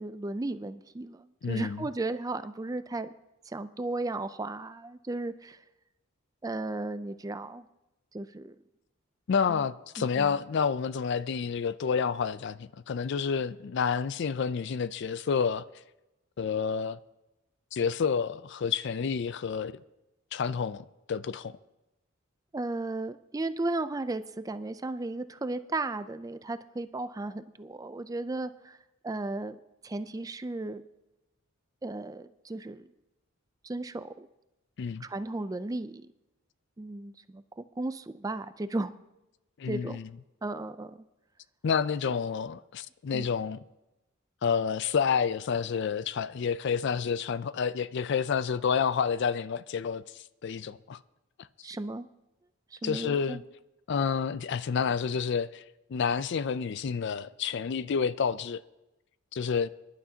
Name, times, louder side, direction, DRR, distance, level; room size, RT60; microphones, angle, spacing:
voice 1, 0.0-3.1 3.4-5.6 6.4-7.7 8.1-8.6 9.5-9.6 10.0-10.3 22.5-28.8 29.0-29.6 29.8-30.8 31.8-32.9 33.6-34.3 35.0-36.1 36.8-38.9 39.7-40.0 40.4-41.0 43.1-43.3 51.6-52.1 52.7-53.4, right 2 dB, 15° right, 0.4 m, -35 dB
voice 2, 1.4-1.8 9.3-15.7 16.4-17.0 17.7-19.8 20.3-21.6 34.8-35.0 39.6-40.1 41.6-43.6 44.4-51.0 52.8-53.4 53.9-55.6 55.9-58.6 59.3-59.7, left 6 dB, 55° left, 0.4 m, -29 dB
24.5 x 11.0 x 2.8 m
head